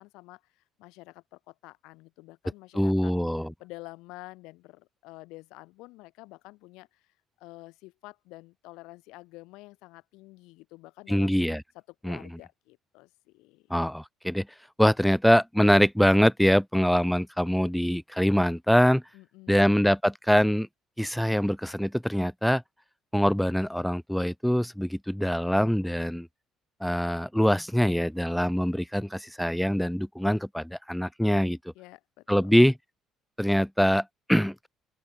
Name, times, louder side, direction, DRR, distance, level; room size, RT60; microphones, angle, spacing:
voice 1, 0.0-3.1 3.6-7.0 7.4-11.3 12.0-13.7 19.1-19.7 31.7-32.6, left 22 dB, 90° left, 5.1 m, -48 dB
voice 2, 2.8-3.5 11.1-11.6 12.0-12.2 13.7-14.5 14.8-19.0 19.5-20.7 21.0-22.6 23.1-26.3 26.8-31.6 32.3-32.8 33.4-34.7, equal, ahead, 0.9 m, -24 dB
open air
cardioid pair, 105°, 0 cm